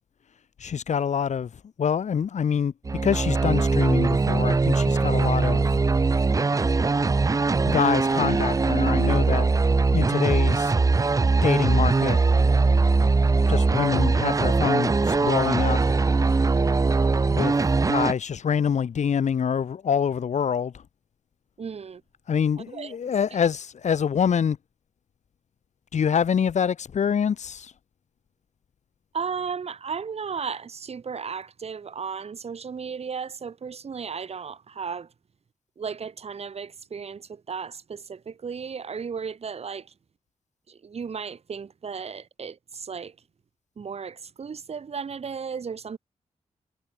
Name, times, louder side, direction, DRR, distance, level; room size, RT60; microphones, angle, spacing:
voice 1, 0.6-1.5 1.8-5.8 7.6-9.5 9.9-10.7 11.4-12.2 13.5-15.8 17.3-17.6 17.8-20.8 22.3-24.6 25.9-27.7, left 7 dB, 70° left, 1.5 m, -25 dB
sound 1, 2.8-18.1, right 3 dB, 25° right, 0.6 m, -21 dB
voice 2, 21.6-22.0 22.7-23.4 29.1-35.1 35.8-39.9 40.7-43.2 43.8-46.0, right 6 dB, 55° right, 1.8 m, -35 dB
cardioid pair, 90°, 13 cm